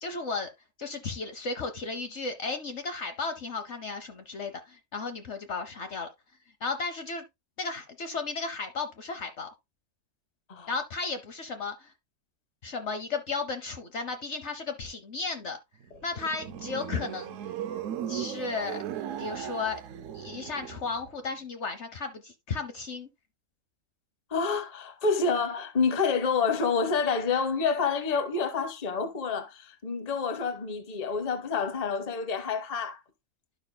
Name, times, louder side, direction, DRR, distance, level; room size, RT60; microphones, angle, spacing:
voice 1, 0.0-0.5 0.8-6.1 6.6-7.2 7.6-9.5 10.7-11.9 12.6-15.6 16.0-17.4 18.1-18.8 19.2-19.8 20.1-23.1, left 4 dB, 55° left, 1.0 m, -34 dB
sound 1, 15.8-21.2, right 9 dB, 70° right, 0.9 m, -37 dB
voice 2, 24.3-33.0, left 5 dB, 30° left, 0.9 m, -28 dB
12.0 x 5.5 x 2.2 m
omnidirectional pair, 1.5 m